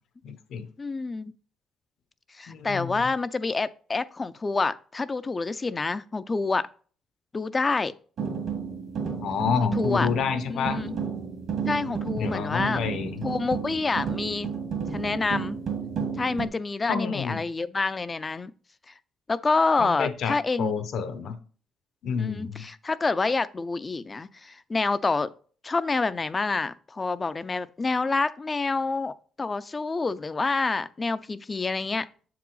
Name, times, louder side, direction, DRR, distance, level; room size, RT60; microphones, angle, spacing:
voice 1, 0.2-0.7 2.5-3.1 9.2-10.8 12.2-13.3 16.9-17.4 19.8-21.4 22.0-22.7, left 6 dB, 70° left, 0.9 m, -29 dB
voice 2, 0.8-1.3 2.4-6.7 7.3-7.9 9.6-10.1 10.5-11.0 11.7-12.8 13.2-14.5 14.9-15.6 16.2-18.5 19.3-20.8 22.2-25.3 25.6-32.1, left 3 dB, 30° left, 0.4 m, -27 dB
sound 1, 8.2-16.5, right 6 dB, 65° right, 2.1 m, -32 dB
7.2 x 4.7 x 4.0 m
cardioid pair, 80°, 0 cm